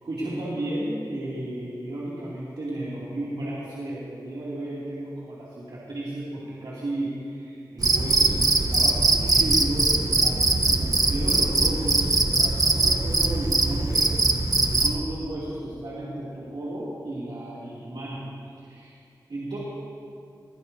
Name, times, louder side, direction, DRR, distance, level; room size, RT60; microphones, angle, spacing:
voice 1, 0.0-18.2 18.6-18.9 19.3-19.6, right 1 dB, 85° right, -9 dB, 2.8 m, -33 dB
Cricket, 7.8-15.0, right 3 dB, 55° right, 1.0 m, -21 dB
22.0 x 15.5 x 2.8 m, 2.6 s
wide cardioid pair, 90°, 8 cm